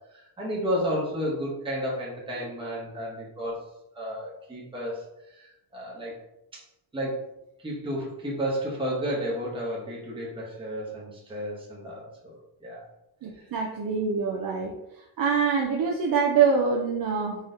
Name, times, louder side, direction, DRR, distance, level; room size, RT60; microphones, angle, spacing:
voice 1, 0.1-3.6 3.9-6.1 6.5-6.6 6.9-7.2 7.6-12.8 13.3-13.5, equal, 10° right, -5 dB, 1.1 m, -32 dB
voice 2, 2.4-2.8 13.2-17.4, right 5 dB, 50° right, -1 dB, 0.6 m, -25 dB
4.1 x 3.1 x 3.8 m, 0.87 s
wide cardioid pair, 155°, 45 cm